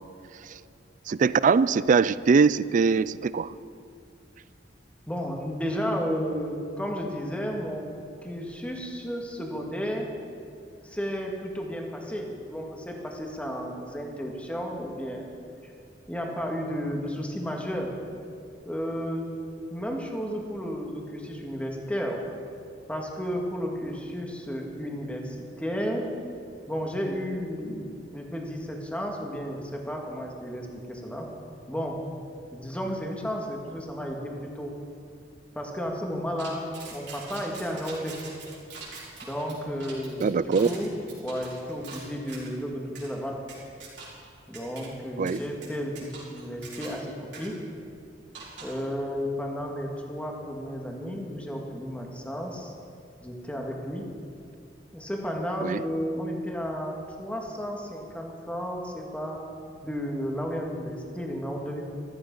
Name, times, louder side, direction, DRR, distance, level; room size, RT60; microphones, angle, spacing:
voice 1, 1.1-3.5 40.2-40.7 45.2-45.4 55.6-55.8, right 5 dB, 45° right, 18 dB, 0.4 m, -22 dB
voice 2, 5.1-7.9 8.2-10.1 10.8-15.3 15.6-15.7 16.1-17.9 18.7-19.3 19.7-22.2 22.9-26.1 26.7-31.3 31.7-32.0 32.5-34.7 35.5-38.2 39.2-40.9 41.2-43.4 44.5-47.6 48.6-52.7 53.2-54.1 54.9-59.4 59.8-61.9, equal, 5° left, 0 dB, 1.9 m, -33 dB
sound 1, 36.4-42.5 43.0-43.1 43.5-44.3 44.5-44.9 45.3-47.1 47.3-47.5 48.3-48.9, right 4 dB, 70° right, 4.6 m, -44 dB
14.5 x 13.5 x 5.5 m, 2.4 s
head